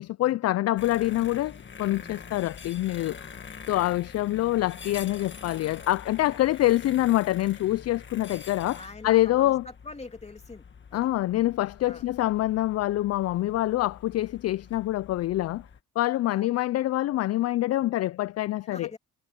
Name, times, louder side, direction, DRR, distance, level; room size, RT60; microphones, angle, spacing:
voice 1, 0.0-9.7 10.9-15.7 16.0-18.9, left 15 dB, 55° left, 0.4 m, -26 dB
sound 1, 0.8-15.8, left 6 dB, 40° left, 1.8 m, -45 dB
voice 2, 8.7-10.6 10.9-11.1 11.8-12.1 16.3-16.5 18.7-19.0, left 3 dB, 20° left, 2.8 m, -44 dB
cardioid pair, 90°, 30 cm